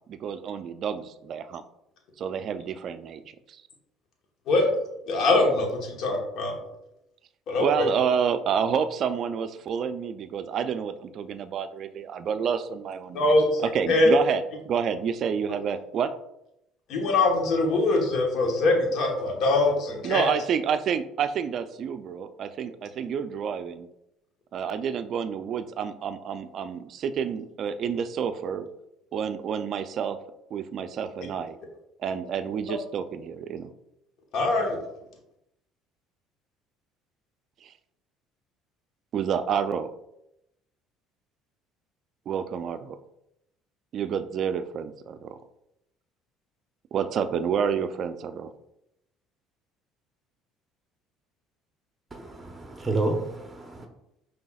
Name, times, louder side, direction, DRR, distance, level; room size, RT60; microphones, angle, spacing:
voice 1, 0.1-1.6 2.2-3.6 7.6-13.2 13.6-16.1 20.0-23.9 24.5-28.7 29.1-30.2 30.5-31.6 32.0-33.7 37.6-37.7 39.1-39.9 42.3-43.0 43.9-45.4 46.9-48.5, right 7 dB, 55° right, 0.3 m, -29 dB
voice 2, 5.1-6.5 7.5-7.9 13.1-14.1 16.9-20.3 34.3-34.8, left 2 dB, 65° left, 1.1 m, -23 dB
voice 3, 52.1-53.9, right 2 dB, 15° right, 0.8 m, -30 dB
5.4 x 3.3 x 2.3 m
supercardioid pair, 85°, 0 cm